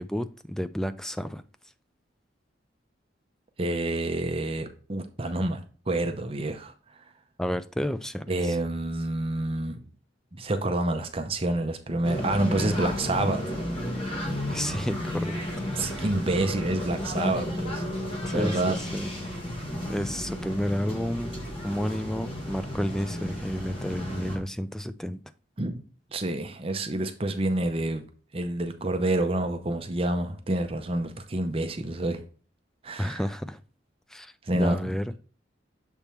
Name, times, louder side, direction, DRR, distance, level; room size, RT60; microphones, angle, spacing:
voice 1, 0.0-1.4 7.4-8.6 14.5-15.4 15.8-16.1 18.3-19.1 19.9-21.3 21.6-25.2 33.0-33.6 34.1-35.1, equal, 5° left, 12 dB, 0.3 m, -31 dB
voice 2, 3.6-6.7 8.3-9.8 10.4-13.5 15.8-17.8 18.3-18.7 25.6-25.8 26.1-28.0 28.3-32.2 32.8-33.2 34.4-34.9, right 1 dB, 30° right, 6 dB, 0.6 m, -28 dB
sound 1, 12.0-24.4, left 1 dB, 30° left, 1.5 m, -32 dB
7.1 x 3.5 x 4.2 m, 0.39 s
head